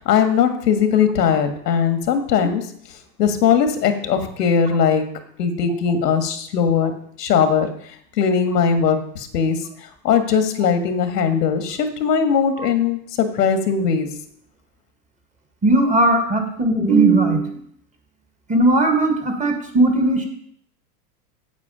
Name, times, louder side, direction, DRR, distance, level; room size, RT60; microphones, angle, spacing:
voice 1, 0.0-2.7 3.2-5.0 5.4-6.9 7.2-14.1, left 7 dB, 85° left, 8 dB, 1.7 m, -19 dB
voice 2, 15.6-17.5 18.5-20.3, right 2 dB, 15° right, 4 dB, 1.8 m, -17 dB
8.5 x 8.2 x 5.0 m, 0.65 s
supercardioid pair, 135°, 47 cm